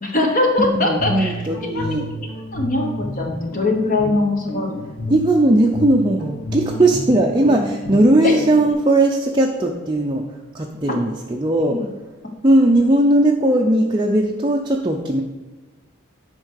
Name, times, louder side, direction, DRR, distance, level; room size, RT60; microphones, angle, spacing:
voice 1, 0.0-1.3 1.6-1.9 2.5-4.8 8.2-8.4 11.7-11.9, left 2 dB, 40° left, 2 dB, 1.1 m, -21 dB
voice 2, 0.6-2.2 5.1-10.2 10.5-11.8 12.4-15.2, right 1 dB, 20° right, 1 dB, 0.5 m, -18 dB
Guitar, 0.7-8.7, left 1 dB, 85° left, 2.1 m, -30 dB
10.0 x 4.5 x 6.5 m, 1.2 s
head